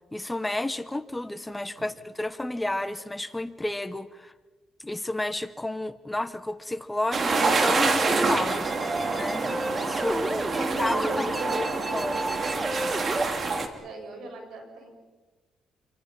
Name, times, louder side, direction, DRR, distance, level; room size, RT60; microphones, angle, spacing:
voice 1, 0.1-4.3 4.8-8.7 9.1-11.3 11.9-12.2, left 1 dB, 10° left, 12 dB, 1.0 m, -31 dB
sound 1, 7.1-13.7, right 3 dB, 45° right, 2.6 m, -27 dB
sound 2, 8.2-13.2, right 1 dB, 15° right, 1.3 m, -32 dB
voice 2, 10.6-12.1 13.7-15.0, right 2 dB, 75° right, 3 dB, 7.6 m, -36 dB
27.5 x 24.5 x 5.8 m, 1.3 s
cardioid pair, 90°, 0 cm